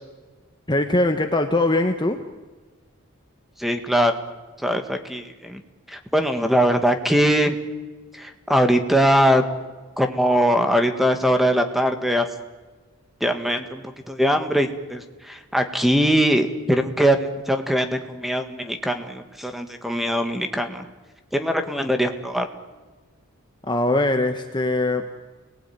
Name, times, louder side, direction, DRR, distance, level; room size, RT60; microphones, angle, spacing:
voice 1, 0.7-2.2 23.7-25.0, left 2 dB, 20° left, 6 dB, 1.3 m, -21 dB
voice 2, 3.6-4.1 4.6-5.6 5.9-7.6 8.1-9.4 10.0-12.2 13.2-20.9 21.3-22.5, equal, ahead, 6 dB, 2.0 m, -21 dB
29.5 x 20.0 x 9.6 m, 1.3 s
head